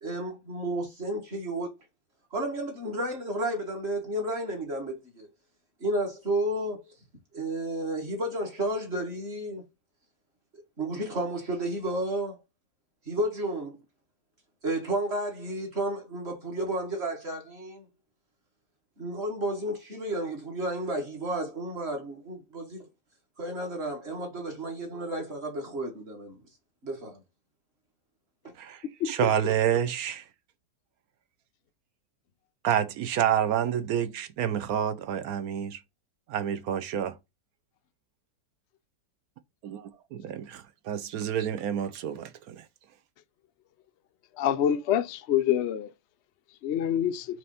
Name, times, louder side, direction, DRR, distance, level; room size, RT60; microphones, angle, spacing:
voice 1, 0.0-1.8 2.3-5.3 5.8-6.8 7.3-9.6 10.8-12.4 13.1-13.8 14.6-17.9 19.0-22.8 23.4-26.4 26.8-27.2, right 1 dB, 35° right, 2.1 m, -32 dB
voice 2, 28.6-30.2 32.6-35.8 36.3-37.2 39.6-42.6, right 9 dB, 65° right, 1.0 m, -29 dB
voice 3, 44.4-45.9 46.6-47.3, left 10 dB, 85° left, 0.5 m, -26 dB
6.1 x 3.0 x 5.5 m
omnidirectional pair, 1.9 m